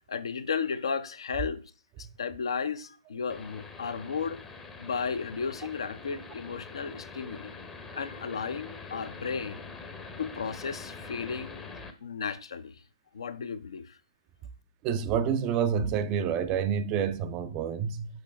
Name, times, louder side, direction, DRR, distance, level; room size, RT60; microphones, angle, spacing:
voice 1, 0.1-1.6 2.0-4.4 4.8-7.5 7.9-9.6 10.2-11.6 12.0-12.8 13.1-14.0, left 6 dB, 60° left, 0.6 m, -34 dB
sound 1, 3.3-11.9, left 4 dB, 10° left, 0.7 m, -44 dB
voice 2, 14.8-18.1, right 7 dB, 25° right, 0.4 m, -28 dB
6.4 x 5.2 x 3.3 m
figure-of-eight pair, 125°, 3 cm